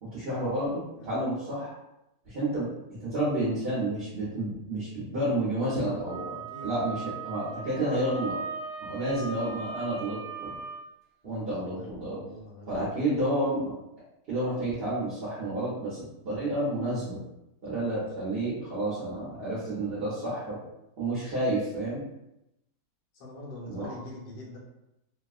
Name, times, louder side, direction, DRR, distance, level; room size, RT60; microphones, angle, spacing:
voice 1, 0.0-1.7 2.2-6.3 6.6-8.4 8.8-10.6 11.2-12.2 12.7-13.7 14.3-17.2 17.6-20.6 21.0-22.0 23.7-23.9, right 1 dB, 45° right, -9 dB, 0.9 m, -30 dB
Wind instrument woodwind instrument, 6.0-10.8, right 4 dB, 85° right, 1.2 m, -38 dB
voice 2, 6.3-7.0 11.2-13.1 23.1-24.6, left 1 dB, 90° left, -6 dB, 1.6 m, -44 dB
3.4 x 2.2 x 2.4 m, 0.88 s
omnidirectional pair, 1.8 m